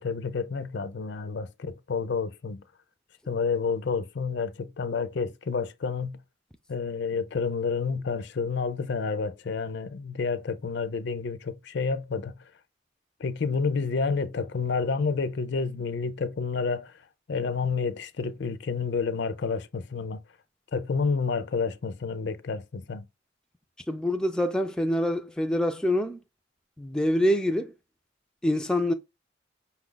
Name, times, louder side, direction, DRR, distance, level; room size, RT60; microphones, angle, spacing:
voice 1, 0.0-2.6 3.3-6.2 6.7-12.3 13.2-16.9 17.3-20.2 20.7-23.1, left 5 dB, 60° left, 0.5 m, -29 dB
voice 2, 23.9-26.2 26.8-27.7 28.4-28.9, left 1 dB, 5° left, 0.3 m, -25 dB
5.6 x 2.4 x 3.8 m
head